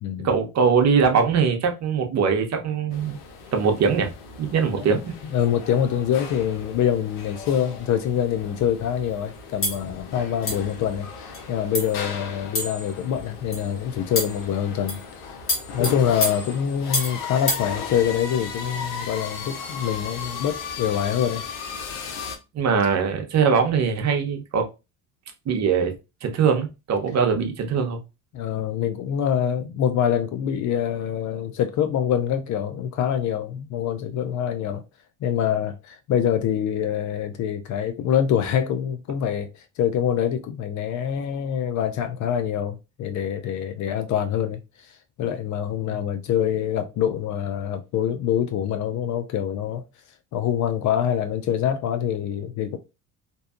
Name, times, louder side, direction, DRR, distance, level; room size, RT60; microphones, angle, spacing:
voice 1, 0.2-3.2 3.5-4.1 4.4-5.1 22.5-24.7 25.5-25.9 26.2-28.0 45.9-46.0, right 6 dB, 40° right, 0.7 m, -21 dB
sound 1, 2.9-22.4, left 5 dB, 80° left, 0.7 m, -36 dB
voice 2, 5.3-15.0 15.7-21.4 28.3-34.8 35.2-49.8 50.3-52.8, left 9 dB, 45° left, 0.4 m, -25 dB
sound 2, 9.6-9.8 10.5-10.7 11.3-11.4 11.7-12.0 12.6-12.9 13.5-13.7 14.2-14.4 14.9-15.1 15.5-17.2 17.5-17.7, left 1 dB, 30° left, 1.2 m, -27 dB
2.7 x 2.2 x 2.4 m
supercardioid pair, 85°, 42 cm